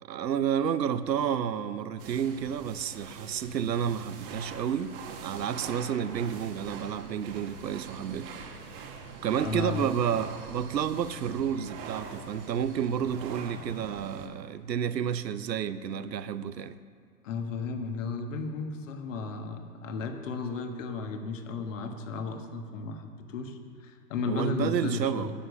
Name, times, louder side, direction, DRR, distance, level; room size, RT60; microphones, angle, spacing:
voice 1, 0.0-4.9 5.2-8.3 9.2-16.8 24.3-25.3, right 8 dB, 80° right, 14 dB, 0.7 m, -30 dB
sound 1, 2.0-14.3, right 5 dB, 30° right, 1.2 m, -43 dB
voice 2, 9.4-9.9 17.2-25.3, left 4 dB, 50° left, 5 dB, 1.4 m, -34 dB
10.0 x 7.9 x 6.5 m, 2.3 s
hypercardioid pair, 125°, 49 cm